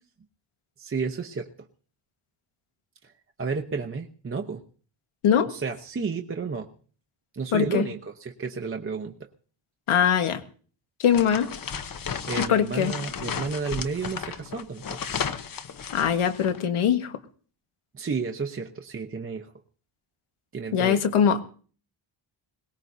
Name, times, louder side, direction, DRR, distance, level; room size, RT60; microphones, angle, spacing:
voice 1, 0.8-1.7 3.4-4.6 5.5-6.7 7.3-9.3 11.9-15.0 17.9-19.5 20.5-21.0, right 4 dB, 25° right, 4 dB, 0.9 m, -32 dB
voice 2, 7.5-7.9 9.9-10.4 11.0-11.5 12.4-12.9 15.9-17.2 20.7-21.4, left 8 dB, 80° left, 8 dB, 1.6 m, -22 dB
sound 1, 11.1-16.6, left 6 dB, 45° left, 1.0 m, -34 dB
21.5 x 18.5 x 2.7 m, 0.43 s
wide cardioid pair, 145°, 49 cm